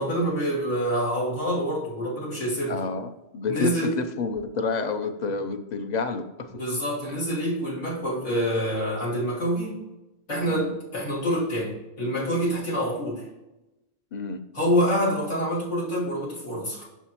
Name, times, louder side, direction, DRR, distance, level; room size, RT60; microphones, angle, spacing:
voice 1, 0.0-2.8 3.5-3.9 6.5-9.8 10.3-13.3 14.5-16.8, equal, 90° left, -8 dB, 3.0 m, -26 dB
voice 2, 2.7-6.6 10.5-10.7 14.1-14.4, left 4 dB, 45° left, 8 dB, 0.6 m, -29 dB
7.3 x 6.1 x 2.9 m, 0.97 s
omnidirectional pair, 1.2 m